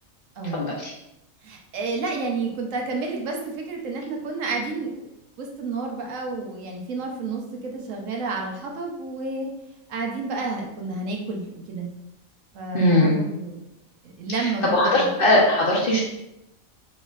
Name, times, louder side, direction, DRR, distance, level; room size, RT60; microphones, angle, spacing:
voice 1, 0.5-0.9 12.7-13.2 14.3-16.0, left 1 dB, 45° left, -4 dB, 1.1 m, -20 dB
voice 2, 1.4-5.1 5.4-9.5 9.9-11.9 12.5-13.6 14.0-15.1, right 3 dB, 70° right, 1 dB, 1.1 m, -30 dB
4.9 x 4.1 x 2.4 m, 0.85 s
omnidirectional pair, 1.4 m